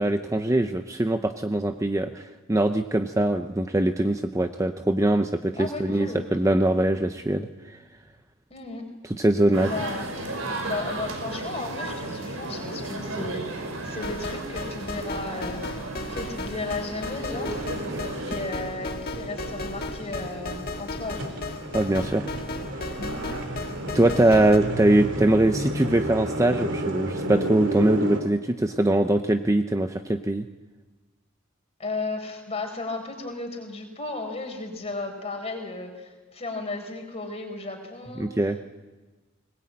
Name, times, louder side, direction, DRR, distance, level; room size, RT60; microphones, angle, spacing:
voice 1, 0.0-7.8 9.0-9.7 17.9-18.0 21.7-22.3 23.9-30.5 38.2-38.6, right 1 dB, 15° right, 7 dB, 0.7 m, -22 dB
voice 2, 5.5-6.2 8.5-8.8 9.6-10.1 10.6-15.6 16.1-17.7 18.3-21.4 23.0-23.2 31.8-38.3, left 2 dB, 30° left, 3 dB, 4.4 m, -34 dB
sound 1, 9.5-18.3, right 2 dB, 85° right, 4.7 m, -34 dB
sound 2, 14.0-24.6, left 2 dB, 50° left, 1.7 m, -35 dB
sound 3, 17.4-28.2, right 1 dB, 60° right, 2.9 m, -32 dB
20.5 x 20.5 x 8.6 m, 1.2 s
head